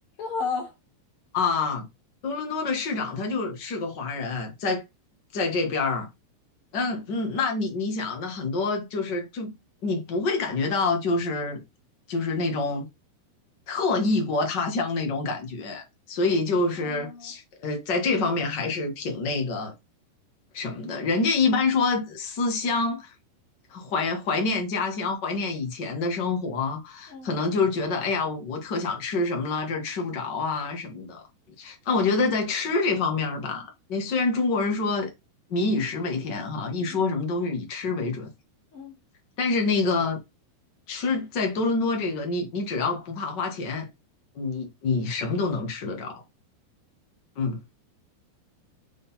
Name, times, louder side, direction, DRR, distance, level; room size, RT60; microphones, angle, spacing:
voice 1, 0.2-0.7 16.8-17.3 27.1-27.3 36.8-37.0 38.7-38.9, left 5 dB, 45° left, 2.0 m, -33 dB
voice 2, 1.3-1.8 2.2-4.8 5.3-6.1 6.7-9.5 9.8-11.6 12.1-12.9 13.7-19.7 20.5-23.1 23.7-31.2 31.6-35.1 35.5-38.3 39.4-40.2 40.9-43.9 44.3-46.2 47.4-47.6, left 3 dB, 85° left, 0.9 m, -27 dB
7.8 x 3.9 x 4.2 m
omnidirectional pair, 4.8 m